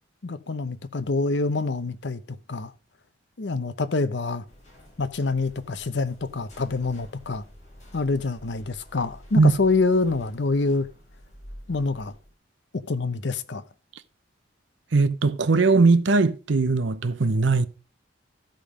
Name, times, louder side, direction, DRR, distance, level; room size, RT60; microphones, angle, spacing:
voice 1, 0.2-2.7 3.4-4.4 5.0-7.4 7.9-10.9 11.7-12.1 12.9-13.6, left 3 dB, 65° left, 0.7 m, -26 dB
sound 1, 4.4-12.3, equal, 40° left, 4.3 m, -48 dB
voice 2, 14.9-17.7, right 3 dB, 75° right, 0.7 m, -19 dB
13.0 x 5.2 x 5.0 m
head